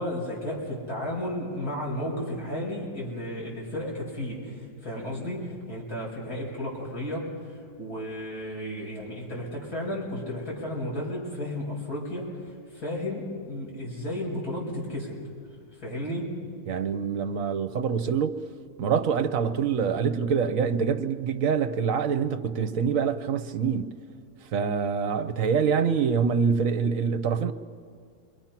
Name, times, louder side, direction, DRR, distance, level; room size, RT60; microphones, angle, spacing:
voice 1, 0.0-15.2 15.8-16.4, left 1 dB, 65° left, 6.3 m, -33 dB
voice 2, 16.7-18.4 18.8-23.9 24.5-27.5, right 6 dB, 60° right, 1.2 m, -25 dB
28.5 x 23.0 x 5.9 m
omnidirectional pair, 1.7 m